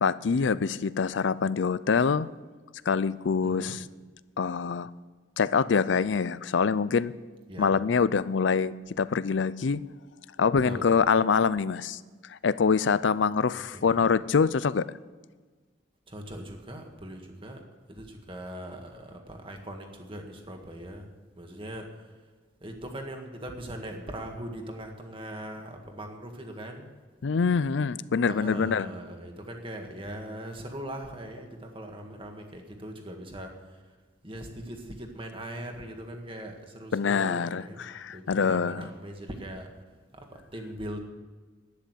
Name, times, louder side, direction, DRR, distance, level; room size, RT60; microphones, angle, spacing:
voice 1, 0.0-2.3 2.9-3.8 4.4-4.9 5.4-7.1 7.6-9.8 10.4-12.0 12.3-14.9 27.2-28.9 36.9-38.9, left 5 dB, 70° left, 18 dB, 0.5 m, -25 dB
voice 2, 3.4-3.8 7.5-7.8 10.6-10.9 13.7-14.1 16.1-17.6 17.9-21.1 21.4-21.9 22.6-26.9 28.3-33.5 34.2-37.8 38.1-39.7 40.1-41.0, right 1 dB, 30° right, 3 dB, 1.8 m, -40 dB
11.5 x 10.0 x 8.0 m, 1.4 s
head